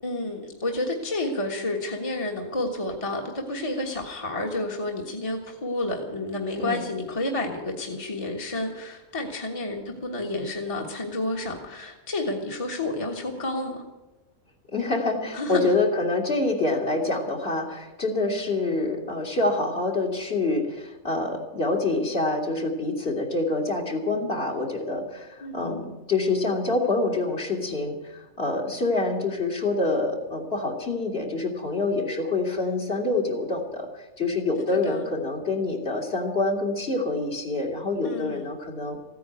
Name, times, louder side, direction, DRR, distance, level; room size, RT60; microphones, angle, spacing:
voice 1, 0.0-13.8 15.3-15.7 25.4-25.9 34.8-35.0 38.0-38.5, left 2 dB, 25° left, 1 dB, 1.6 m, -30 dB
voice 2, 14.7-33.9 34.2-39.0, left 2 dB, 50° left, 0 dB, 2.7 m, -26 dB
15.0 x 9.5 x 9.3 m, 1.1 s
omnidirectional pair, 1.3 m